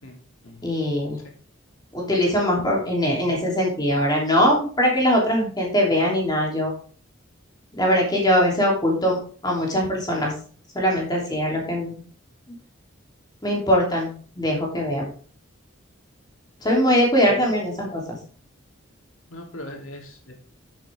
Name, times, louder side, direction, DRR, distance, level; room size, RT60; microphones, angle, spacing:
voice 1, 0.0-0.7 1.2-1.3 19.3-20.3, left 1 dB, 90° left, 2 dB, 2.9 m, -40 dB
voice 2, 0.6-1.2 1.9-6.7 7.8-9.2 9.4-10.3 10.7-12.0 13.4-15.1 16.6-18.2, equal, 20° left, -2 dB, 3.0 m, -21 dB
10.0 x 7.7 x 3.5 m, 0.42 s
head